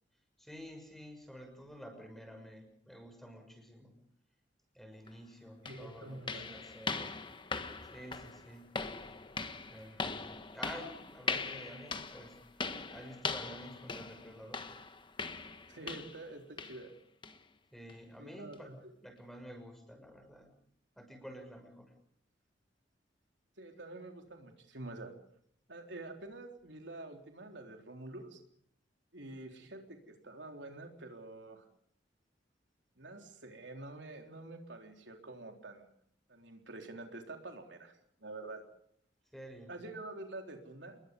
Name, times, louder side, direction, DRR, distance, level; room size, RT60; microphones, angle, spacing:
voice 1, 0.4-3.9 4.7-7.2 7.9-8.7 9.7-12.4 12.9-14.7 17.7-20.5 21.0-21.9 39.3-39.7, equal, ahead, 5 dB, 6.4 m, -50 dB
sound 1, 5.1-5.2 5.7-16.3 16.6-16.9 17.2-17.4 17.9-18.0 18.5-18.6, left 4 dB, 25° left, 1.3 m, -40 dB
voice 2, 5.6-6.6 15.7-16.9 18.2-18.8 23.6-25.1 25.7-28.4 29.1-31.6 33.0-35.8 36.3-38.6 39.7-41.0, right 2 dB, 80° right, 3 dB, 3.8 m, -47 dB
29.0 x 21.5 x 5.4 m, 0.66 s
head